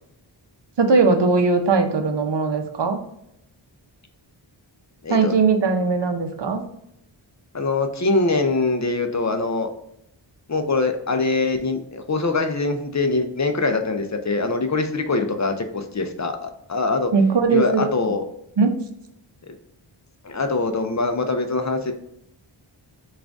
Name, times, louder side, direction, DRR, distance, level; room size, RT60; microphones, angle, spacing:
voice 1, 0.8-3.0 5.1-6.7 17.1-17.9 18.6-18.7, right 4 dB, 60° right, 6 dB, 0.6 m, -19 dB
voice 2, 5.0-5.3 7.5-9.7 10.5-17.1 17.5-18.2 19.5-19.6 20.2-21.9, left 3 dB, 35° left, 6 dB, 0.5 m, -23 dB
3.7 x 2.4 x 3.4 m, 0.78 s
wide cardioid pair, 40°, 48 cm